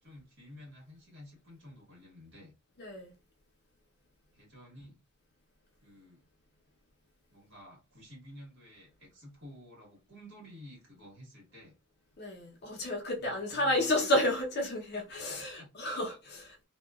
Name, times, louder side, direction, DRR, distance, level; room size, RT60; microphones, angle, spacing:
voice 1, 0.0-2.5 4.3-5.0 5.8-6.2 7.3-11.7 13.2-13.8 15.3-15.7, equal, 55° right, 1.6 m, -52 dB
voice 2, 2.8-3.1 12.2-16.6, left 1 dB, 45° left, 0.7 m, -31 dB
2.9 x 2.3 x 2.3 m
head